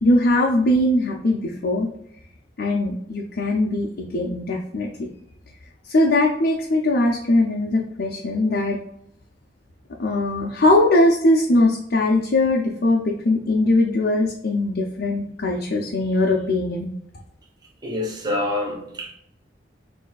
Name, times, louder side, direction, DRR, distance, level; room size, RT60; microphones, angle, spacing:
voice 1, 0.0-1.9 2.6-5.1 5.9-8.8 10.0-16.9, left 1 dB, 65° left, -1 dB, 0.6 m, -20 dB
voice 2, 17.8-19.2, left 1 dB, 25° right, -1 dB, 1.1 m, -27 dB
6.4 x 2.8 x 2.4 m, 0.74 s
head